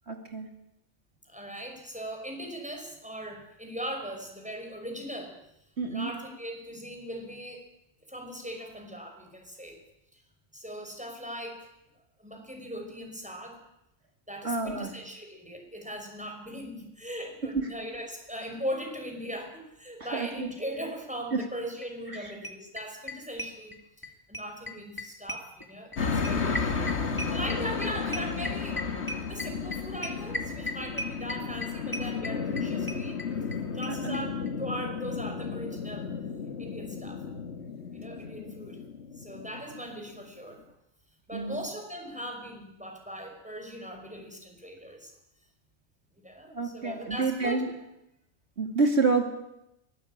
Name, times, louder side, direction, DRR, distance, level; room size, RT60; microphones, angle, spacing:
voice 1, 0.1-0.5 5.8-6.1 14.4-14.9 17.5-17.7 20.1-20.5 21.3-21.4 22.2-22.3 34.0-34.2 41.3-41.6 46.5-47.7 48.6-49.2, right 3 dB, 60° right, 4 dB, 3.0 m, -28 dB
voice 2, 1.3-5.4 5.9-7.7 8.1-9.8 10.1-10.2 10.5-11.7 12.2-13.6 14.3-23.8 24.3-26.9 27.3-28.8 29.2-33.2 33.7-36.1 36.6-37.2 37.9-38.8 39.2-40.6 41.3-45.1 46.2-47.6, equal, 5° right, 3 dB, 5.8 m, -39 dB
sound 1, 21.8-21.9 22.1-22.2 22.4-24.1 24.3-33.6 33.8-33.9 34.1-34.2 34.5-34.6, equal, 15° left, 2.6 m, -36 dB
sound 2, 26.0-40.2, left 5 dB, 60° left, 1.8 m, -33 dB
23.5 x 19.0 x 8.9 m, 0.85 s
omnidirectional pair, 1.3 m